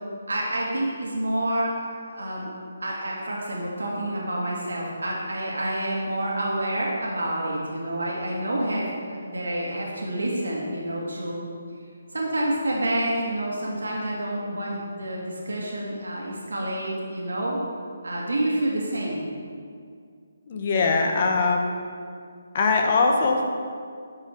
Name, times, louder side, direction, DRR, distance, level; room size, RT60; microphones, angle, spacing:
voice 1, 0.3-1.7 2.0-2.5 2.8-11.4 12.1-17.6 18.0-19.2, right 1 dB, 85° right, -4 dB, 2.4 m, -28 dB
voice 2, 20.5-21.7 22.5-23.4, left 3 dB, 40° left, 1 dB, 1.3 m, -21 dB
12.0 x 5.0 x 4.7 m, 2.2 s
figure-of-eight pair, 155°, 0 cm